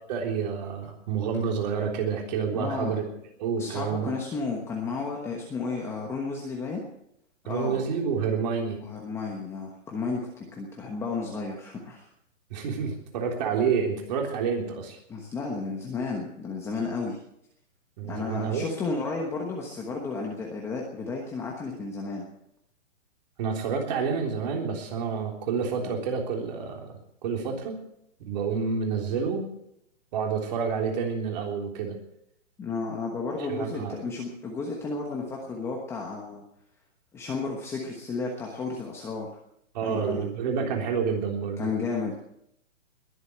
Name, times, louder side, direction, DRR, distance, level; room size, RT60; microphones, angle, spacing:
voice 1, 0.1-3.0 3.4-4.2 7.5-8.8 12.5-15.0 18.0-18.7 23.4-26.9 27.2-27.8 28.2-29.5 30.1-32.0 33.5-33.9 39.7-41.7, right 6 dB, 35° right, 2 dB, 3.6 m, -29 dB
voice 2, 2.5-2.9 3.6-6.8 7.5-7.8 8.8-12.1 15.1-17.2 18.0-22.3 32.6-36.4 37.1-39.3 39.8-40.3 41.6-42.1, left 4 dB, 5° left, -1 dB, 1.2 m, -32 dB
21.5 x 8.1 x 8.0 m, 0.76 s
hypercardioid pair, 165°, 38 cm